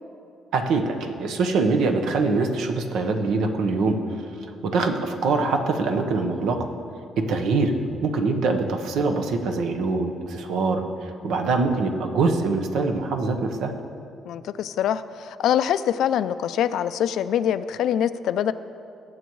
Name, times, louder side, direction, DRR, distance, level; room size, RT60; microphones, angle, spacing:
voice 1, 0.5-6.7 7.2-7.7 8.0-13.7, right 3 dB, 80° right, 4 dB, 1.0 m, -24 dB
voice 2, 14.3-18.5, left 10 dB, 75° left, 14 dB, 0.4 m, -24 dB
20.0 x 7.9 x 3.1 m, 2.6 s
cardioid pair, 115°, 0 cm